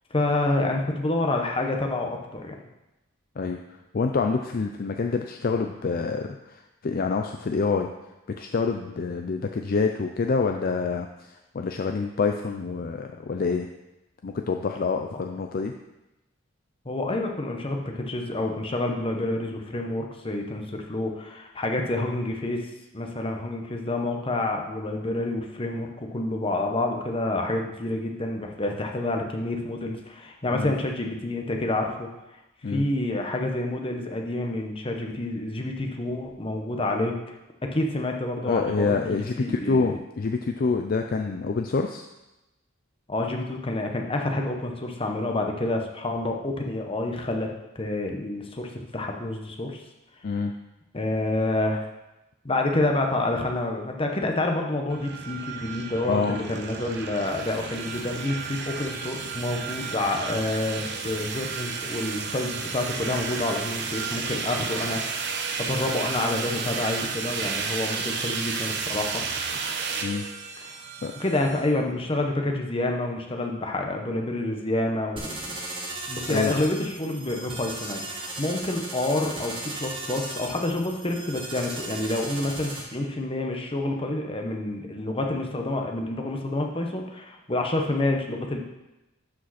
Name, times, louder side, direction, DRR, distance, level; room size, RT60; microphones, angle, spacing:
voice 1, 0.1-2.6 15.1-15.2 16.8-22.6 22.9-32.1 32.7-37.1 37.7-39.0 39.4-40.0 43.1-47.5 47.7-49.8 50.9-51.8 52.4-69.2 70.6-70.7 71.2-75.5 76.1-88.6, left 2 dB, 25° left, 2 dB, 1.0 m, -28 dB
voice 2, 3.9-7.9 8.3-13.7 14.2-15.7 30.5-30.7 32.6-32.9 38.4-42.0 50.2-50.6 56.0-56.4 70.0-70.3 71.0-71.1 76.3-76.6, left 4 dB, 45° left, 5 dB, 0.4 m, -27 dB
sound 1, 54.9-71.7, right 5 dB, 60° right, 0.9 m, -32 dB
sound 2, 75.2-82.8, right 2 dB, 25° right, 1.7 m, -36 dB
12.0 x 5.1 x 4.2 m, 0.97 s
head